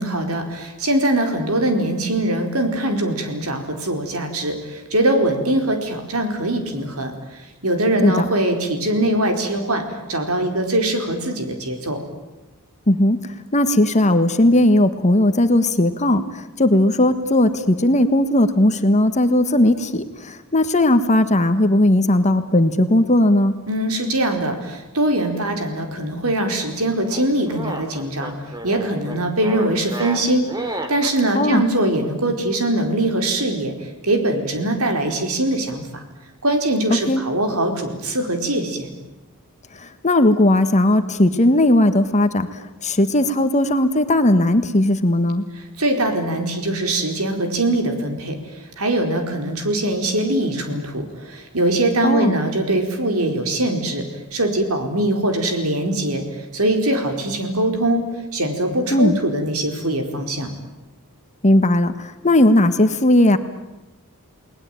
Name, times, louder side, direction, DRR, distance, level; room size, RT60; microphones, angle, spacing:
voice 1, 0.0-9.8 10.1-12.0 23.7-28.3 28.6-33.7 34.0-36.0 36.4-38.9 45.8-48.4 48.8-54.0 54.3-56.2 56.5-58.0 58.3-60.5, right 1 dB, 70° right, 5 dB, 4.4 m, -22 dB
voice 2, 12.9-13.2 13.5-23.5 31.3-31.6 37.1-37.2 39.8-42.5 42.8-45.4 52.0-52.3 58.9-59.2 61.4-63.4, left 1 dB, 30° left, 9 dB, 1.4 m, -17 dB
sound 1, 27.1-31.2, right 1 dB, 20° right, 2.7 m, -32 dB
30.0 x 20.0 x 9.2 m, 1.0 s
head